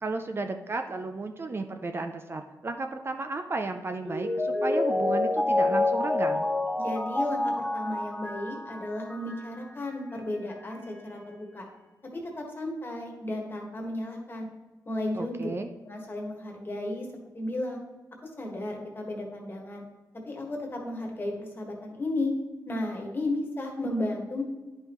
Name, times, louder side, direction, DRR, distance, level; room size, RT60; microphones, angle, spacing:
voice 1, 0.0-6.5 15.2-15.7, right 3 dB, 35° right, 6 dB, 0.5 m, -33 dB
Mallet percussion, 4.1-9.6 9.9-10.0, left 2 dB, 5° right, 1.4 m, -28 dB
voice 2, 6.7-11.7 12.1-14.5 14.8-15.5 15.8-17.1 17.3-17.8 18.4-19.8 20.2-22.3 22.7-24.4, left 1 dB, 30° left, 0 dB, 1.6 m, -34 dB
10.0 x 5.4 x 3.0 m, 1.2 s
wide cardioid pair, 100°, 7 cm